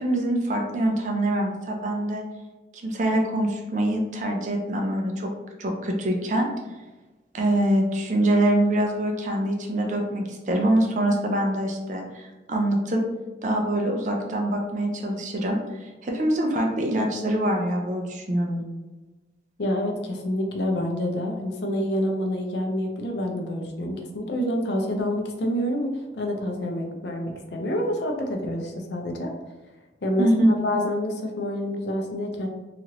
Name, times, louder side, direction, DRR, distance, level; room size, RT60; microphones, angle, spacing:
voice 1, 0.0-2.2 2.8-5.3 5.6-6.5 7.3-13.0 13.4-18.6 30.2-30.5, right 1 dB, 40° right, 1 dB, 0.4 m, -24 dB
voice 2, 19.6-29.3 30.0-32.5, equal, 70° left, 2 dB, 0.5 m, -27 dB
3.0 x 2.4 x 2.8 m, 1.1 s
head